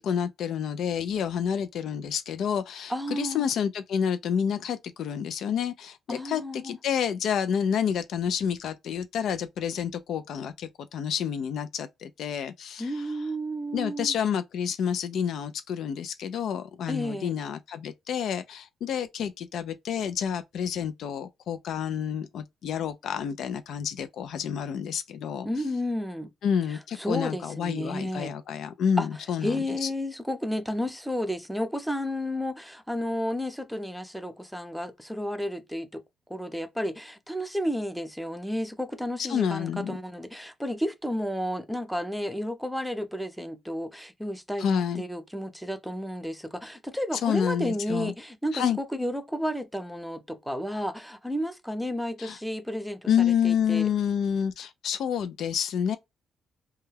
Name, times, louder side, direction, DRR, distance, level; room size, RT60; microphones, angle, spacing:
voice 1, 0.0-13.0 13.7-25.5 26.4-29.9 39.3-40.0 44.6-45.0 47.2-48.1 48.5-48.8 52.2-52.4 53.1-56.0, left 8 dB, 70° left, 0.3 m, -29 dB
voice 2, 2.9-3.4 6.1-6.8 12.8-14.2 16.9-17.3 25.4-26.3 26.7-28.3 29.0-29.1 29.4-36.0 36.3-53.1 53.4-53.9, equal, ahead, 0.5 m, -32 dB
2.2 x 2.2 x 3.2 m
cardioid pair, 90°, 0 cm